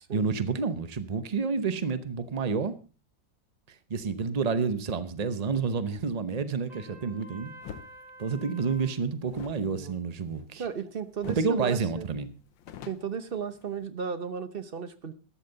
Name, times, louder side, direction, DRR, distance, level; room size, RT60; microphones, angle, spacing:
voice 1, 0.1-2.8 3.7-7.5 8.2-10.6 11.3-12.3, right 5 dB, 70° right, 0.3 m, -29 dB
Trumpet, 6.7-8.9, right 2 dB, 20° right, 3.7 m, -49 dB
sound 1, 7.6-7.9 9.3-10.8 11.2-11.6 11.9-12.0 12.3-13.9, left 9 dB, 90° left, 1.6 m, -45 dB
voice 2, 9.6-10.0 10.6-12.1 12.8-15.1, right 7 dB, 45° right, 0.8 m, -35 dB
13.5 x 11.5 x 3.9 m
omnidirectional pair, 2.0 m